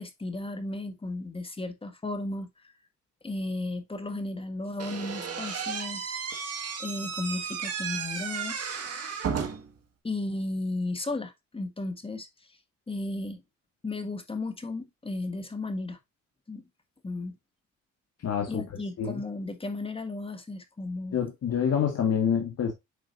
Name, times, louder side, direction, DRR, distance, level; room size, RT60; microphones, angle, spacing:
voice 1, 0.0-2.7 3.2-6.0 6.8-8.8 10.0-12.3 12.9-13.4 13.8-16.0 16.5-16.6 17.0-17.4 18.5-21.2, left 2 dB, 20° left, 1.5 m, -34 dB
Slam / Squeak, 4.8-9.8, right 6 dB, 55° right, 2.0 m, -34 dB
voice 2, 18.2-18.6 19.0-19.2 21.1-22.7, left 7 dB, 55° left, 1.8 m, -26 dB
8.8 x 4.8 x 2.7 m
cardioid pair, 90°, 30 cm